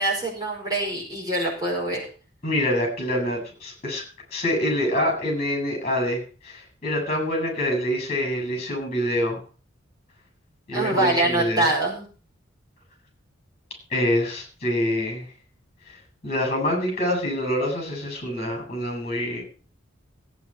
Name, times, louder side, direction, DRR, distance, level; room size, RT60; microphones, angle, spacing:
voice 1, 0.0-2.0 10.7-12.1, right 2 dB, 20° right, -3 dB, 4.9 m, -24 dB
voice 2, 2.4-4.0 4.3-9.4 10.7-11.7 13.9-15.3 16.2-19.4, left 1 dB, 30° left, 2 dB, 7.8 m, -26 dB
16.5 x 9.2 x 4.5 m, 0.38 s
head